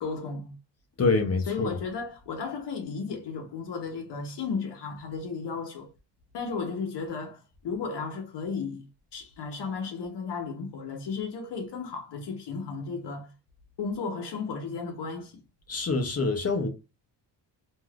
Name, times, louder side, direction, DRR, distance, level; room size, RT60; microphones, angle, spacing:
voice 1, 0.0-0.5 1.5-5.9 6.3-8.9 9.1-13.3 13.8-15.4, left 5 dB, 70° left, 0.9 m, -34 dB
voice 2, 1.0-1.8 15.7-16.7, left 3 dB, 35° left, 0.6 m, -26 dB
3.3 x 2.5 x 2.3 m
cardioid pair, 100°, 43 cm